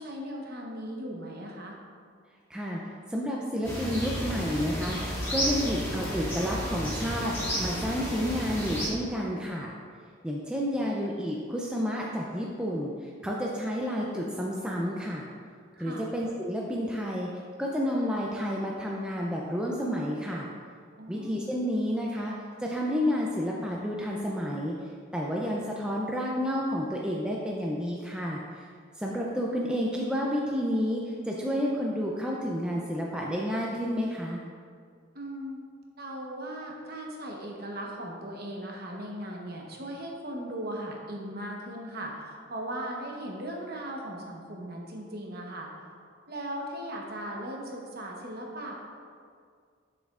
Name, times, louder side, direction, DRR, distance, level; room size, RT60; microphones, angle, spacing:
voice 1, 0.0-1.8 15.7-16.1 21.0-21.4 35.1-35.6 36.0-45.7 46.3-48.7, right 1 dB, 50° right, -1 dB, 0.9 m, -38 dB
voice 2, 2.5-9.7 10.2-15.3 15.8-17.3 17.6-20.5 21.1-22.3 22.6-24.7 25.1-28.7 29.0-34.4, equal, 5° right, -3 dB, 0.4 m, -30 dB
sound 1, 3.6-8.9, equal, 10° left, 1.7 m, -32 dB
7.5 x 6.8 x 2.4 m, 2.1 s
head